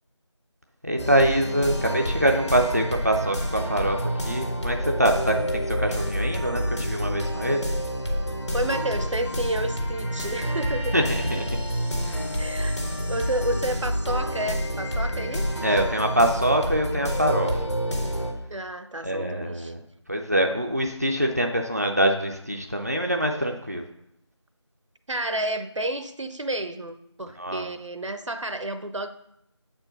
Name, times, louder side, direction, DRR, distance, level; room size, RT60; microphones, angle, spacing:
voice 1, 0.8-4.0 4.3-7.6 10.9-11.5 12.0-12.2 15.6-17.5 19.0-19.8 20.1-23.8 27.4-27.6, right 1 dB, 30° right, 2 dB, 0.5 m, -24 dB
sound 1, 1.0-18.3, equal, 65° left, 1.8 m, -28 dB
voice 2, 8.5-11.0 11.2-11.4 12.4-15.8 18.5-19.7 25.1-29.2, right 1 dB, 80° right, 9 dB, 0.8 m, -31 dB
7.5 x 4.5 x 5.7 m, 0.79 s
figure-of-eight pair, 175°, 16 cm